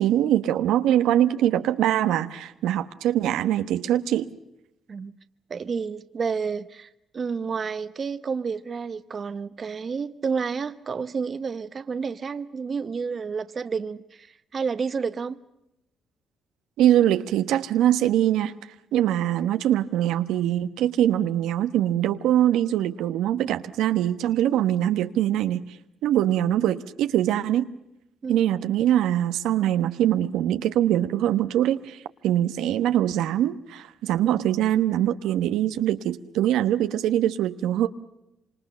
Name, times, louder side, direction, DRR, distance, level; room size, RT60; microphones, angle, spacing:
voice 1, 0.0-4.3 16.8-18.5 18.9-25.6 26.0-27.7 28.3-37.9, right 11 dB, 90° right, 1.2 m, -23 dB
voice 2, 5.5-15.4 28.2-28.5, right 5 dB, 45° right, 1.1 m, -30 dB
26.5 x 26.5 x 6.8 m
cardioid pair, 90°, 0 cm